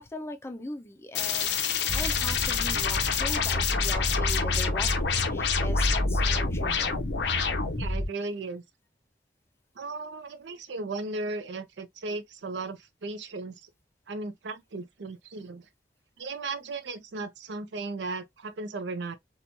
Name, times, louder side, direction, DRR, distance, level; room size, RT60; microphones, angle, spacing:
voice 1, 0.0-7.0, left 2 dB, 15° left, 0.4 m, -40 dB
sound 1, 1.1-7.9, left 7 dB, 75° left, 0.5 m, -28 dB
sound 2, 1.9-8.1, equal, 25° right, 1.3 m, -30 dB
voice 2, 7.8-8.6 9.8-13.5 14.1-15.6 16.2-19.2, right 3 dB, 85° right, 0.5 m, -36 dB
2.9 x 2.2 x 2.5 m
head